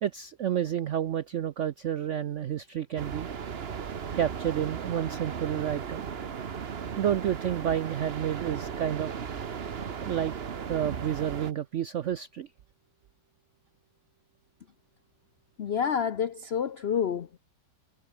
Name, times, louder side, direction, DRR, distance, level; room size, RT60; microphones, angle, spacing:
voice 1, 0.0-3.3 4.1-6.1 7.0-9.1 10.0-10.3 10.7-12.5, right 10 dB, 75° right, 0.7 m, -30 dB
sound 1, 3.0-11.5, right 7 dB, 40° right, 1.1 m, -36 dB
voice 2, 15.6-17.4, left 7 dB, 70° left, 0.5 m, -28 dB
omnidirectional pair, 2.0 m